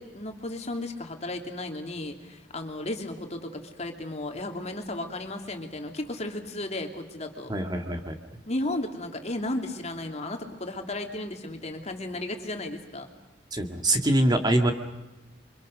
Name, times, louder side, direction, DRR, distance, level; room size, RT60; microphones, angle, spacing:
voice 1, 0.0-7.5 8.5-13.1, left 1 dB, 40° left, 4 dB, 2.8 m, -34 dB
voice 2, 7.5-8.1 13.5-14.7, right 1 dB, 25° right, 5 dB, 2.0 m, -24 dB
29.0 x 25.0 x 6.5 m, 1.0 s
head